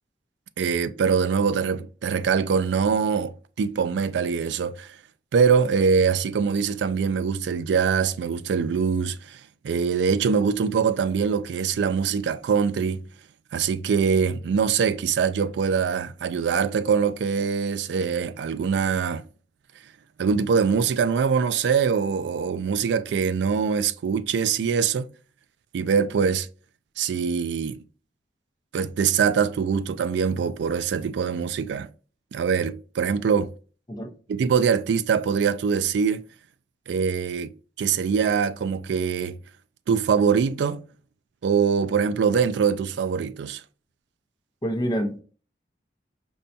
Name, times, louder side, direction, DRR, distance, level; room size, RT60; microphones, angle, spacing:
voice 1, 0.6-5.0 5.3-13.0 13.5-19.2 20.2-25.1 25.7-26.5 27.0-27.8 28.7-31.9 32.3-33.5 34.3-36.2 36.9-37.5 37.8-39.4 39.9-40.8 41.4-43.6, right 6 dB, 70° right, 0.3 m, -23 dB
voice 2, 44.6-45.2, equal, 25° left, 0.6 m, -27 dB
5.3 x 2.2 x 2.6 m
head